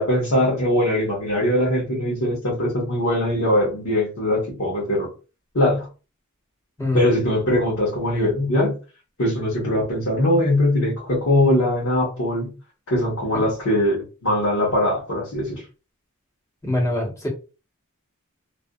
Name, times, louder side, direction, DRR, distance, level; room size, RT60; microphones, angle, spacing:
voice 1, 0.0-5.1 5.5-5.9 6.9-8.7 9.2-12.5 12.9-15.6, left 1 dB, 75° left, -6 dB, 1.1 m, -21 dB
voice 2, 16.6-17.3, left 1 dB, 15° left, -3 dB, 1.0 m, -24 dB
2.6 x 2.4 x 2.3 m, 0.32 s
head